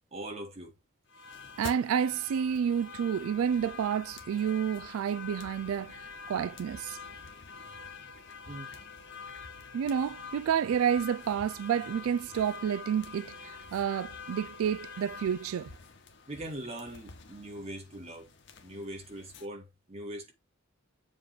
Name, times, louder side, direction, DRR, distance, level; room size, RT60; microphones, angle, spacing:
voice 1, 0.1-0.7 7.8-7.9 8.5-8.8 16.3-18.3 18.6-20.3, right 1 dB, 30° right, 1.7 m, -41 dB
sound 1, 1.1-19.5, left 5 dB, 55° left, 1.0 m, -46 dB
voice 2, 1.6-7.0 9.7-15.7, right 8 dB, 75° right, 0.3 m, -30 dB
7.2 x 3.2 x 5.7 m
head